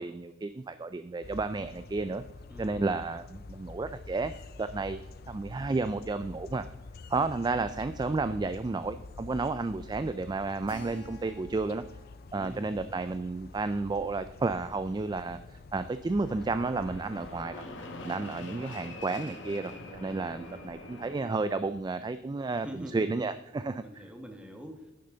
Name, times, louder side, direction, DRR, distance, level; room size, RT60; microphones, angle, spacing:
voice 1, 0.0-2.2 2.6-4.3 4.6-5.0 5.3-6.7 7.1-11.8 12.3-17.6 18.0-22.7 22.9-23.8, right 3 dB, 20° right, 12 dB, 0.3 m, -32 dB
sound 1, 1.2-17.4, left 3 dB, 55° left, 0.5 m, -47 dB
voice 2, 2.5-2.9 12.3-12.9 22.5-23.2 23.8-24.9, equal, 5° right, 3 dB, 1.7 m, -44 dB
Keyboard (musical), 10.7-15.2, left 1 dB, 70° left, 0.9 m, -55 dB
Fixed-wing aircraft airplane, 16.2-21.8, left 2 dB, 90° left, 1.8 m, -44 dB
11.0 x 10.5 x 3.9 m, 0.94 s
head